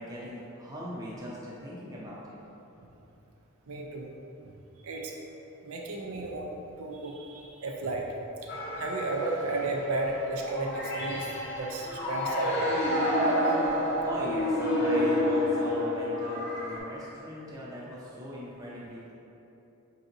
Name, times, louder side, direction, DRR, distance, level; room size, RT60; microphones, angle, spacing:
voice 1, 0.0-2.3 14.0-19.1, equal, 15° right, -7 dB, 0.6 m, -39 dB
voice 2, 3.7-4.1 4.4-4.5 4.8-5.2 5.6-6.5 6.8-8.1 8.7-11.3 11.6-12.7, right 2 dB, 80° right, 0 dB, 0.4 m, -33 dB
sound 1, 8.5-16.8, left 1 dB, 45° left, 0.7 m, -29 dB
4.8 x 2.7 x 2.6 m, 2.9 s
head